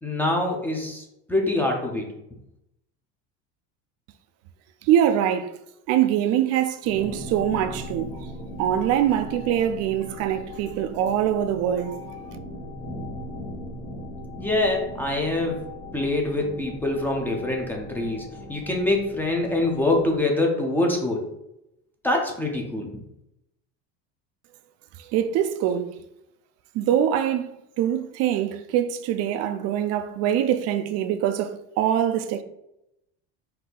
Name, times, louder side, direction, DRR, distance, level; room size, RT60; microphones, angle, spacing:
voice 1, 0.0-2.1 14.4-15.6 15.9-21.2 22.0-22.9, left 2 dB, 5° left, 0.6 m, -25 dB
voice 2, 4.8-5.5 5.9-8.3 8.6-12.0 25.0-26.0 26.7-32.4, right 10 dB, 55° right, 0.4 m, -24 dB
sound 1, 6.8-20.2, left 1 dB, 50° left, 1.3 m, -39 dB
4.4 x 2.7 x 3.8 m
cardioid pair, 145°, 30 cm